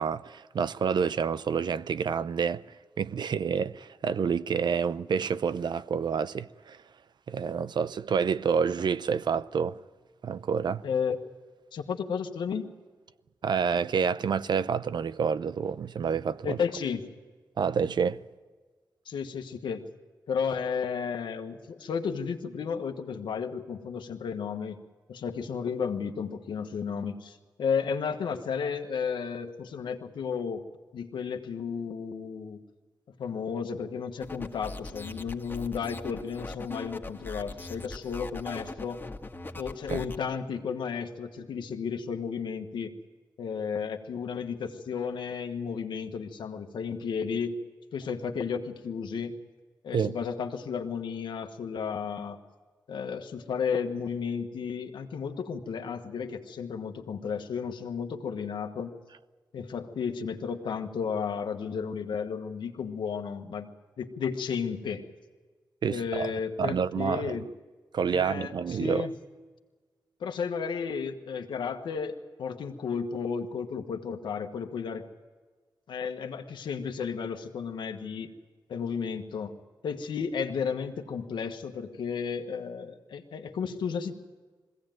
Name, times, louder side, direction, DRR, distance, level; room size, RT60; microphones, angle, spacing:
voice 1, 0.0-2.6 3.0-6.8 7.3-9.8 10.2-10.8 13.4-16.6 17.6-18.2 39.9-40.0 49.9-50.1 65.8-66.3 66.6-67.4 67.9-69.1, right 6 dB, 70° right, 0.7 m, -28 dB
voice 2, 10.8-11.2 11.7-12.7 16.4-17.1 19.0-19.8 20.3-24.8 25.1-30.7 30.9-32.6 33.2-39.0 39.5-42.9 43.4-47.6 47.9-49.4 49.8-52.4 52.9-58.9 59.5-63.7 64.0-65.0 65.9-67.5 68.1-69.1 70.2-75.0 75.9-78.3 78.7-79.5 79.8-84.2, left 6 dB, 90° left, 1.3 m, -33 dB
sound 1, 34.2-40.2, left 2 dB, 25° left, 1.9 m, -40 dB
21.5 x 16.5 x 9.1 m
cardioid pair, 50°, 8 cm